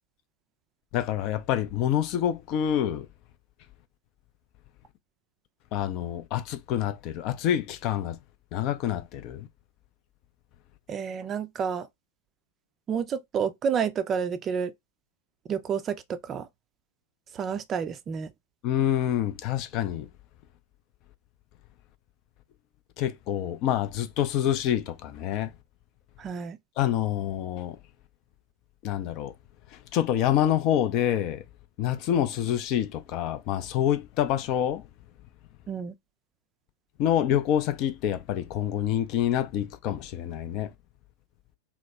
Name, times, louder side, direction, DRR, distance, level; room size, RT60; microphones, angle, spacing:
voice 1, 0.9-3.1 5.7-8.2 8.5-9.5 18.6-20.1 23.0-25.5 26.8-27.8 28.8-29.3 29.7-31.4 31.8-34.9 37.0-40.7, left 11 dB, 40° left, 0.4 m, -27 dB
voice 2, 10.9-11.9 12.9-14.7 15.5-16.5 17.3-18.3 26.2-26.6 35.7-35.9, right 7 dB, 25° right, 0.4 m, -30 dB
2.8 x 2.0 x 3.2 m
figure-of-eight pair, 90°, 0 cm